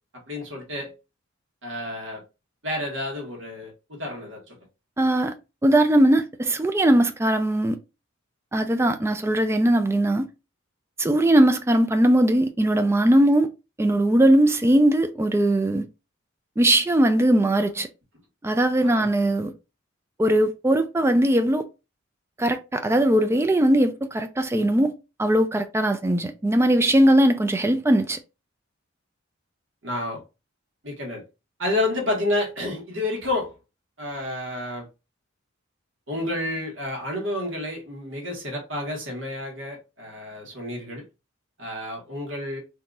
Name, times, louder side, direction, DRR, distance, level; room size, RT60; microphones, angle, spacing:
voice 1, 0.3-0.9 1.6-2.2 2.6-4.6 18.8-19.1 29.8-30.2 30.8-31.2 31.6-33.5 34.0-34.9 36.1-41.0 41.6-42.6, left 1 dB, 65° right, 1.4 m, -30 dB
voice 2, 5.0-5.3 5.6-7.8 8.5-10.3 11.0-13.5 13.8-15.9 16.6-17.9 18.4-19.5 20.2-21.7 22.4-24.9 25.2-28.2, right 1 dB, 10° right, 0.3 m, -20 dB
3.8 x 2.7 x 2.4 m
head